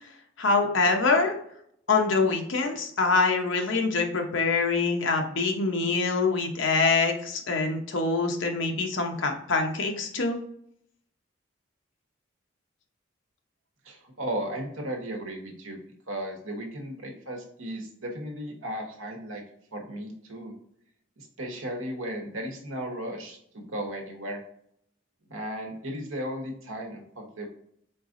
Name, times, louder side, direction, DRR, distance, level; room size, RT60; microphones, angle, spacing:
voice 1, 0.4-1.3 1.9-10.4, left 4 dB, 70° left, 3 dB, 0.8 m, -25 dB
voice 2, 13.8-15.8 16.1-19.4 19.7-20.5 21.2-24.4 25.3-27.5, right 1 dB, 90° right, 2 dB, 1.1 m, -35 dB
4.5 x 4.0 x 2.5 m, 0.69 s
head